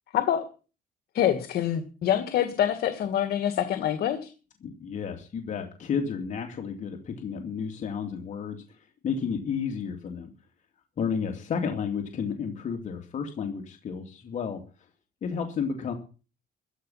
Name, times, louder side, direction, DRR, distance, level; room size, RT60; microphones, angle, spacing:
voice 1, 0.1-0.4 1.1-4.3, left 10 dB, 70° left, 9 dB, 1.9 m, -26 dB
voice 2, 4.6-10.3 11.0-14.6 15.2-15.9, left 6 dB, 45° left, 3 dB, 2.8 m, -32 dB
14.5 x 12.0 x 5.8 m, 0.35 s
cardioid pair, 110°, 17 cm